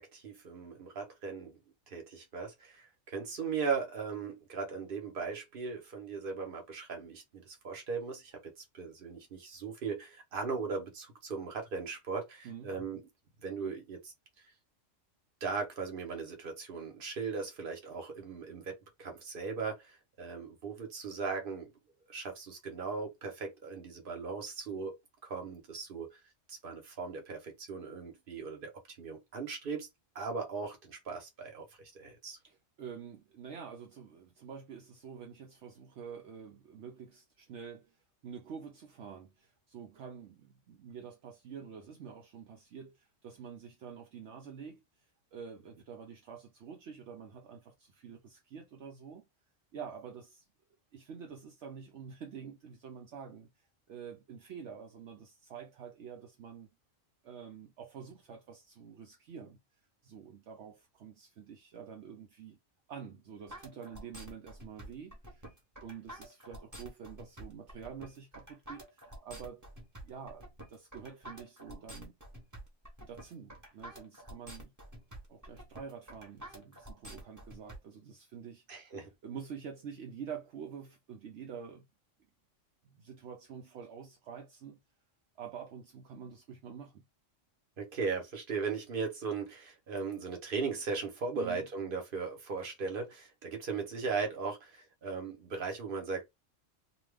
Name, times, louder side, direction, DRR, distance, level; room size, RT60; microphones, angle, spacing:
voice 1, 0.1-1.6 1.9-13.0 13.4-14.1 15.4-21.7 22.1-25.0 25.2-26.2 26.5-29.9 30.1-32.4 78.7-79.1 87.8-96.3, right 5 dB, 50° right, 1.1 m, -38 dB
voice 2, 12.4-12.8 32.4-38.0 38.2-44.8 45.3-49.2 49.7-50.5 50.9-56.7 57.2-59.6 60.0-62.6 62.9-65.5 65.8-69.7 70.0-72.1 73.0-74.7 75.3-81.9 82.8-84.8 85.4-87.0 91.3-91.7, right 7 dB, 70° right, 0.9 m, -47 dB
sound 1, 63.5-77.8, right 1 dB, 15° right, 0.9 m, -48 dB
2.8 x 2.3 x 3.3 m
omnidirectional pair, 1.3 m